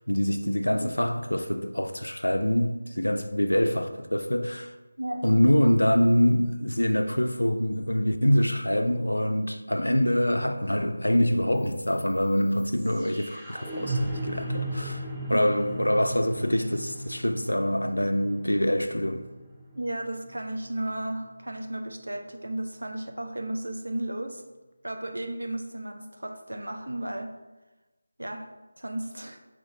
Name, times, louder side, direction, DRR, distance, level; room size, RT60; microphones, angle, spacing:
voice 1, 0.1-4.7 5.2-15.0 15.3-19.3, equal, 75° left, 0.4 m, -25 dB
sound 1, 11.6-21.6, right 1 dB, 5° right, 0.4 m, -36 dB
voice 2, 19.8-24.4 24.8-27.3 28.2-29.4, right 1 dB, 70° right, 0.5 m, -34 dB
5.4 x 2.5 x 3.3 m
figure-of-eight pair, 160°, 0 cm